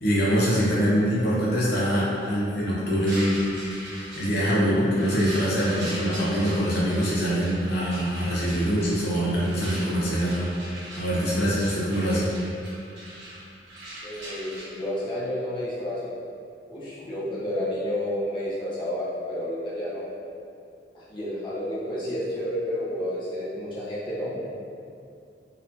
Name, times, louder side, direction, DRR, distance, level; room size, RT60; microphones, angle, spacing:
voice 1, 0.0-3.4 4.2-12.3, equal, 65° left, -7 dB, 0.7 m, -24 dB
sound 1, 3.0-14.6, right 1 dB, 90° right, 1.0 m, -40 dB
voice 2, 14.0-16.1 16.7-20.1 20.9-24.5, left 1 dB, 30° left, -9 dB, 0.8 m, -30 dB
4.1 x 2.6 x 2.7 m, 2.4 s
head